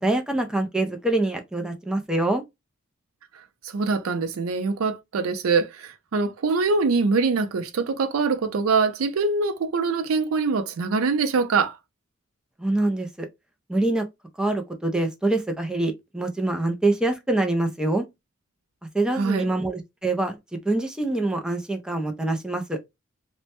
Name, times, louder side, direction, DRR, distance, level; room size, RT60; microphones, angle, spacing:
voice 1, 0.0-2.4 12.6-13.3 13.7-14.1 14.4-18.0 18.9-22.8, right 2 dB, 5° right, 0.4 m, -25 dB
voice 2, 3.6-11.8 19.2-19.5, right 4 dB, 85° right, 0.4 m, -23 dB
2.1 x 2.1 x 2.8 m
head